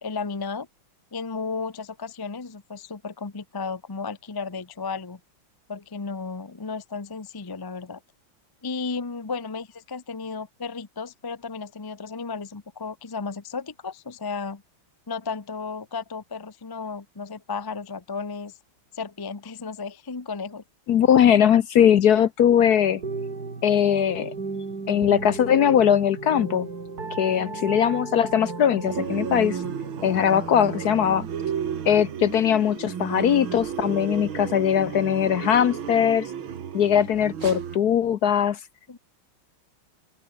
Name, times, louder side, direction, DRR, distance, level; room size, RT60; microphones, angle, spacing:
voice 1, 0.0-0.7 1.1-5.2 5.7-8.0 8.6-14.6 15.1-18.5 18.9-20.6 27.4-27.7 38.9-39.0, left 4 dB, 25° left, 0.5 m, -34 dB
voice 2, 20.9-23.0 23.6-24.3 24.9-26.7 27.2-29.6 30.0-31.2 31.9-36.3 36.7-38.6, left 9 dB, 60° left, 1.1 m, -20 dB
sound 1, 22.8-31.3, right 4 dB, 45° right, 3.8 m, -35 dB
sound 2, 28.8-37.8, right 8 dB, 75° right, 2.4 m, -33 dB
open air
omnidirectional pair, 2.2 m